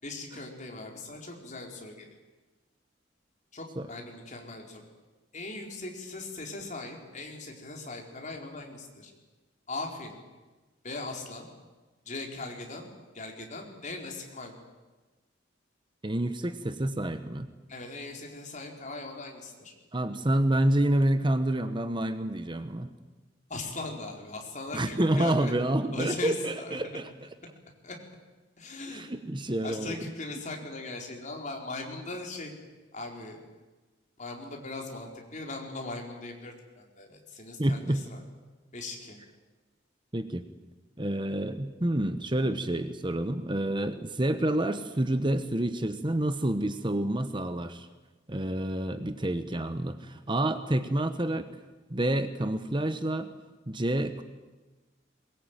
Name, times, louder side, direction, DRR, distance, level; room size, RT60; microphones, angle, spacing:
voice 1, 0.0-2.1 3.5-4.8 5.3-9.1 9.7-10.1 10.8-11.5 12.1-12.9 13.1-14.6 17.7-19.7 23.5-25.5 25.9-27.0 27.8-28.0 28.6-29.0 29.4-32.5 32.9-33.4 34.2-38.2 38.7-39.2, left 2 dB, 40° left, 1 dB, 4.4 m, -39 dB
voice 2, 16.0-17.5 19.9-22.9 24.7-27.1 28.9-30.1 37.6-38.0 40.1-40.4 41.0-47.9 48.3-51.5 51.9-53.3 53.7-54.2, right 1 dB, 25° right, 10 dB, 1.1 m, -28 dB
22.0 x 21.5 x 9.1 m, 1.2 s
head